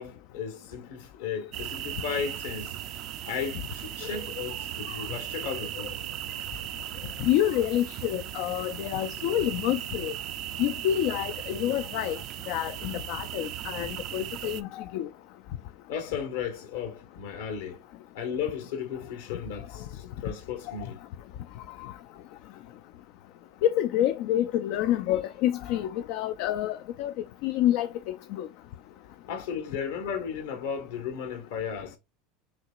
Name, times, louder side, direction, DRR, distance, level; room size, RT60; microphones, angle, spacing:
voice 1, 0.0-2.7 3.3-5.9 15.9-17.8 18.1-21.0 29.3-32.0, left 7 dB, 80° left, 1.5 m, -35 dB
sound 1, 1.5-14.6, right 13 dB, 55° right, 0.5 m, -37 dB
voice 2, 7.2-10.1 10.6-12.2 12.5-15.1 20.7-20.8 21.8-21.9 23.6-27.1 27.4-28.5, left 12 dB, 65° left, 0.4 m, -28 dB
5.8 x 2.9 x 2.4 m
hypercardioid pair, 95°, 0 cm